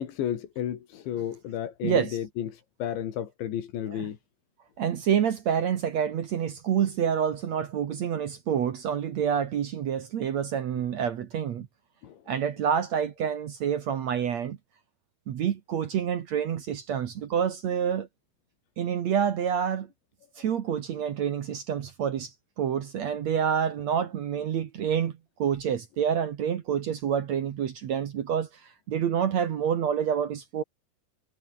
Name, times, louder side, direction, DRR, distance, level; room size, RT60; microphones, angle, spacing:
voice 1, 0.0-4.2 12.0-12.2, left 10 dB, 85° left, 4.9 m, -32 dB
voice 2, 1.8-2.2 3.9-4.1 4.8-11.7 12.3-14.6 15.3-18.1 18.8-19.9 20.4-22.3 22.6-25.1 25.4-28.5 28.9-30.6, right 8 dB, 65° right, 1.8 m, -27 dB
omnidirectional pair, 5.1 m